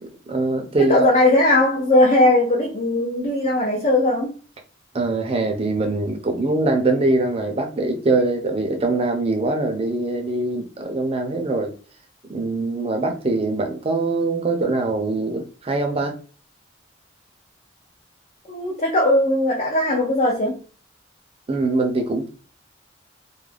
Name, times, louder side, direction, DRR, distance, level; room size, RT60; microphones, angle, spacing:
voice 1, 0.0-1.1 4.9-11.7 12.3-16.1 21.5-22.3, right 2 dB, 30° right, 4 dB, 0.5 m, -23 dB
voice 2, 0.9-4.3 18.5-20.6, left 1 dB, 35° left, -2 dB, 0.4 m, -18 dB
2.4 x 2.1 x 3.2 m, 0.38 s
head